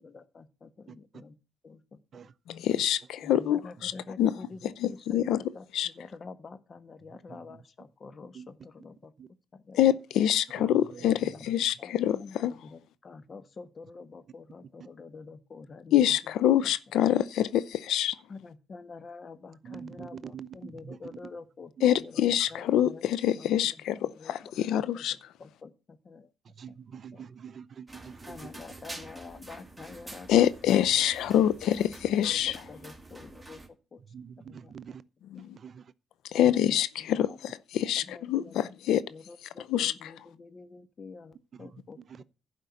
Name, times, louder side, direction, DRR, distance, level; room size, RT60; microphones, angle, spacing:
voice 1, 0.0-1.4 1.6-2.0 3.2-9.1 9.5-9.8 11.0-11.5 11.8-16.2 16.6-16.7 18.3-23.0 23.3-23.7 24.0-24.5 24.9-26.3 26.7-26.8 27.1-27.2 28.3-30.5 31.4-31.8 32.0-33.6 33.9-34.0 34.5-34.7 36.3-37.4 37.7-42.2, left 4 dB, 40° left, 1.3 m, -47 dB
voice 2, 2.5-3.9 4.2-4.3 4.6-5.9 9.7-12.6 15.9-18.2 21.8-25.2 30.3-32.6 35.2-35.6 36.3-39.0 39.6-40.1, left 11 dB, 80° left, 0.6 m, -26 dB
voice 3, 10.6-11.0 19.6-21.2 26.6-28.5 34.1-35.0 35.6-35.8 41.5-41.8 42.1-42.2, right 7 dB, 50° right, 0.6 m, -45 dB
sound 1, 27.9-33.7, right 2 dB, 10° right, 2.3 m, -47 dB
11.5 x 5.2 x 8.4 m
cardioid pair, 90°, 0 cm